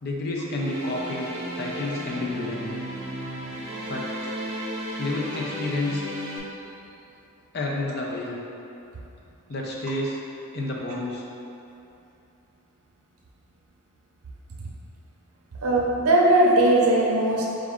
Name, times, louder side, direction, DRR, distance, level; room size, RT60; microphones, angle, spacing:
voice 1, 0.0-1.3 1.6-2.7 3.9-4.1 5.0-6.0 7.5-8.4 9.5-10.2 10.5-11.2, left 2 dB, 45° left, -2 dB, 0.5 m, -29 dB
sound 1, 0.5-6.4, right 1 dB, 30° right, 0.6 m, -34 dB
voice 2, 15.6-17.5, right 1 dB, 75° right, -2 dB, 0.5 m, -19 dB
4.7 x 2.5 x 3.5 m, 2.8 s
head